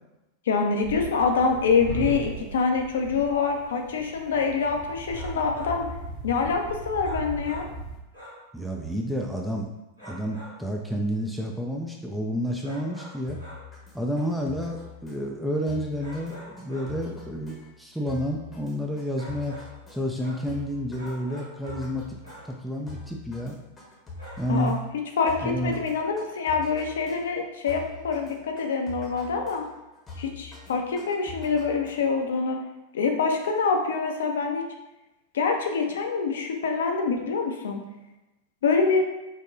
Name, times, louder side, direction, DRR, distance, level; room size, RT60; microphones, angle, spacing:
voice 1, 0.5-5.9 6.2-7.7 24.5-24.8 25.2-29.6 30.2-32.6 32.9-34.6 35.3-37.8 38.6-39.0, left 5 dB, 60° left, 3 dB, 0.5 m, -25 dB
sound 1, 0.8-8.0, right 3 dB, 35° right, 1.0 m, -37 dB
sound 2, 5.0-5.8 7.0-7.8 8.1-8.5 10.0-10.7 12.6-13.7 16.0-17.1 19.1-19.8 20.2-20.5 20.9-22.0 22.2-22.6 24.2-24.8, equal, 80° right, 1.3 m, -45 dB
voice 2, 8.5-9.7 10.0-13.4 13.9-19.6 19.9-22.2 22.5-23.6 24.4-24.8 25.4-25.8, equal, ahead, 0 dB, 0.3 m, -30 dB
sound 3, 13.3-32.4, left 3 dB, 15° left, 0.8 m, -45 dB
4.6 x 2.1 x 2.6 m, 0.97 s
figure-of-eight pair, 90°, 0 cm